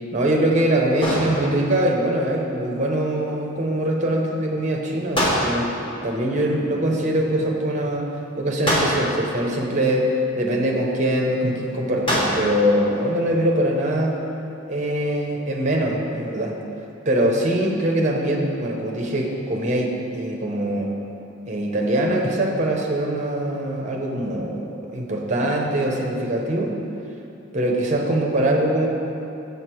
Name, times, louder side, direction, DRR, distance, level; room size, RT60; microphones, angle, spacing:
voice 1, 0.1-5.7 6.0-8.1 8.4-14.2 14.7-16.6 17.0-20.9 21.4-26.7 27.5-28.9, right 1 dB, 35° right, 0 dB, 0.8 m, -22 dB
sound 1, 1.0-1.9 5.1-6.0 8.7-9.4 12.1-12.7, equal, 25° left, 1.2 m, -24 dB
6.9 x 6.5 x 4.5 m, 2.9 s
head